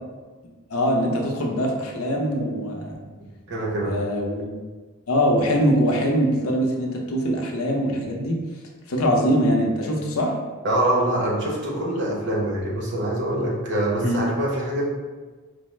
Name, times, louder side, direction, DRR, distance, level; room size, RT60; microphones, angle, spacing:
voice 1, 0.7-2.9 3.8-4.4 5.1-8.4 8.9-10.3 14.0-14.2, equal, 80° left, 0 dB, 0.6 m, -22 dB
voice 2, 3.5-4.0 10.6-14.8, right 1 dB, 55° right, -4 dB, 0.9 m, -24 dB
4.5 x 2.0 x 3.1 m, 1.3 s
head